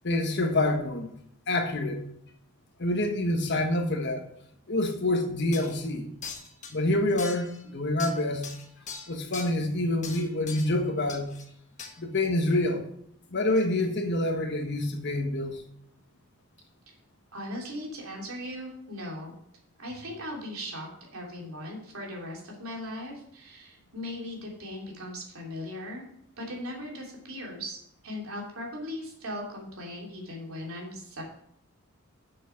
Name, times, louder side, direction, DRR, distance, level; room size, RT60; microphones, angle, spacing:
voice 1, 0.0-1.1 1.5-2.1 2.8-4.2 4.7-6.1 6.7-8.5 9.1-11.3 12.0-12.8 13.3-15.6, left 1 dB, 55° left, 5 dB, 1.3 m, -27 dB
sound 1, 4.9-5.0 5.5-5.8 6.2-6.7 7.2-7.6 8.0-9.5 10.0-10.8 11.1-11.5 11.8-11.9, left 5 dB, 35° left, 1.3 m, -41 dB
voice 2, 17.3-19.4 19.8-26.0 26.4-27.8 28.0-31.2, left 1 dB, 80° right, -1 dB, 3.1 m, -38 dB
7.2 x 7.0 x 5.9 m, 0.70 s
head